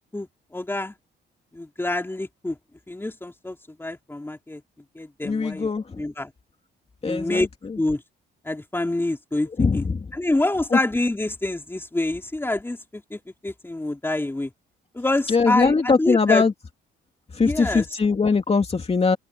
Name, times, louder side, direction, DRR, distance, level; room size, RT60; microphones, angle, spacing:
voice 1, 0.1-0.9 1.5-2.6 2.9-4.6 4.9-6.3 7.0-7.5 7.8-8.0 8.4-9.8 10.1-14.5 14.9-16.4 17.4-18.0, left 2 dB, 10° left, 3.3 m, -27 dB
voice 2, 5.2-5.8 7.0-7.5 9.6-10.0 15.3-16.5 17.4-19.2, left 4 dB, 30° left, 2.6 m, -21 dB
open air
cardioid pair, 90°, 20 cm